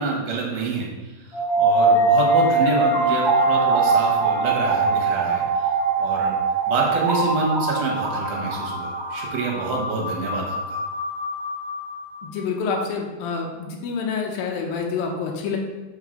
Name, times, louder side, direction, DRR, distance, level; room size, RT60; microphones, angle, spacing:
voice 1, 0.0-5.7 6.0-6.4 6.7-10.8, right 3 dB, 70° right, -1 dB, 2.9 m, -27 dB
sound 1, 1.3-12.3, right 3 dB, 30° left, 1.5 m, -22 dB
voice 2, 12.2-15.6, left 5 dB, 75° left, 1 dB, 2.4 m, -27 dB
5.7 x 4.7 x 5.2 m, 1.1 s
omnidirectional pair, 4.6 m